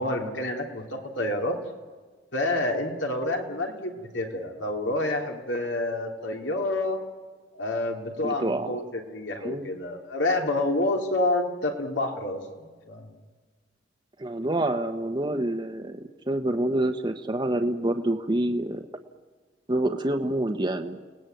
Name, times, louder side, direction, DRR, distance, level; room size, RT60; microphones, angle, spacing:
voice 1, 0.0-1.6 2.3-7.0 7.5-13.1, left 2 dB, 80° left, 2 dB, 3.3 m, -28 dB
voice 2, 8.2-8.7 9.4-9.7 14.2-16.0 16.3-18.8 19.7-21.0, right 1 dB, 25° right, 4 dB, 1.0 m, -27 dB
30.0 x 19.0 x 9.2 m, 1.5 s
head